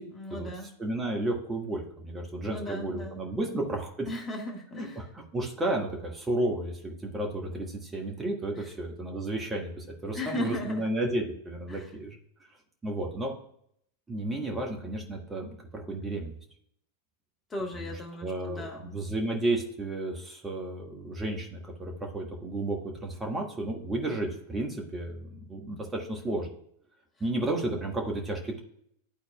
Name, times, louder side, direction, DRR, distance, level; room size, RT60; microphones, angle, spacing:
voice 1, 0.1-0.8 2.4-3.6 4.1-5.0 8.5-8.7 10.1-10.9 11.7-11.9 17.5-19.0, left 1 dB, 20° left, 0 dB, 1.7 m, -37 dB
voice 2, 0.8-4.1 4.7-4.8 5.3-12.2 12.8-13.3 14.1-16.3 17.8-17.9 18.2-26.5 27.2-28.6, right 2 dB, 15° right, 0 dB, 1.3 m, -32 dB
12.0 x 4.2 x 2.3 m, 0.69 s
figure-of-eight pair, 90°, 0 cm